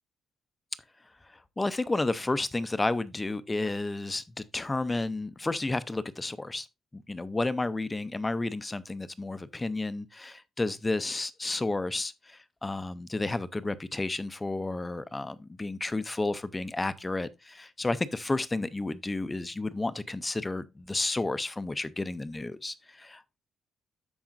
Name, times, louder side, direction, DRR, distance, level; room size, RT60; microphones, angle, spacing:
voice 1, 1.6-6.7 6.9-23.4, left 2 dB, 10° left, 0.4 m, -31 dB
13.0 x 4.8 x 2.5 m
cardioid pair, 180°, 0 cm